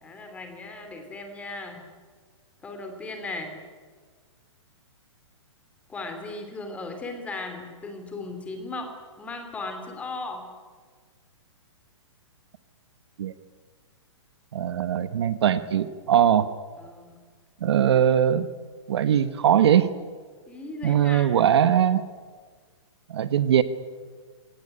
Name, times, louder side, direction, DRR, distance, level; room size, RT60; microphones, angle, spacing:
voice 1, 0.0-1.8 2.6-3.5 5.9-8.9 9.2-10.4 16.8-17.2 20.5-21.4, left 3 dB, 10° left, 5 dB, 2.8 m, -37 dB
voice 2, 14.5-16.5 17.6-18.5 18.9-19.9 20.8-22.1 23.1-23.6, right 9 dB, 60° right, 12 dB, 1.3 m, -21 dB
23.5 x 18.0 x 9.9 m, 1.5 s
hypercardioid pair, 165°, 16 cm